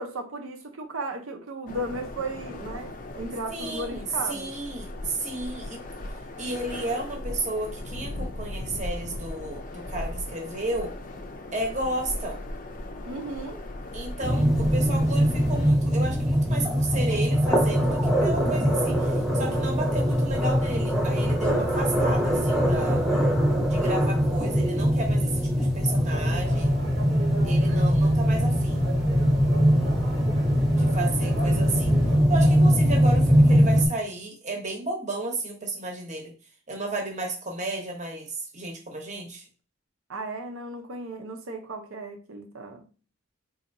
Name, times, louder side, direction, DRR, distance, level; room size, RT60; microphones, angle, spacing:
voice 1, 0.0-4.5 13.0-13.6 31.4-32.3 40.1-42.8, right 2 dB, 80° right, 0.8 m, -35 dB
sound 1, 1.7-15.7, left 1 dB, 40° left, 0.4 m, -37 dB
voice 2, 3.5-5.8 6.4-10.9 11.5-12.4 13.9-23.1 23.7-26.7 27.4-28.9 30.7-31.9 32.3-36.3 36.7-39.4, right 2 dB, 35° right, 0.9 m, -33 dB
sound 2, 14.2-33.9, equal, ahead, 0.8 m, -22 dB
sound 3, 26.1-32.2, right 1 dB, 65° right, 1.0 m, -39 dB
4.0 x 2.9 x 2.6 m
head